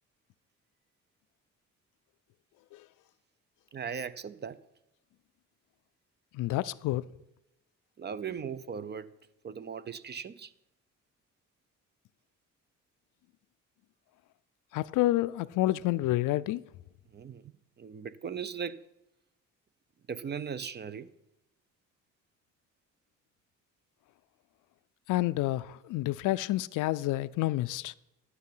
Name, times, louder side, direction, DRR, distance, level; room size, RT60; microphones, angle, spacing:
voice 1, 3.7-4.6 8.0-9.1 9.4-10.5 17.1-18.9 20.1-21.1, right 7 dB, 35° right, 0.6 m, -38 dB
voice 2, 6.3-7.0 14.7-16.6 25.1-27.9, left 16 dB, 85° left, 0.5 m, -29 dB
12.0 x 8.0 x 5.6 m
cardioid pair, 90°, 30 cm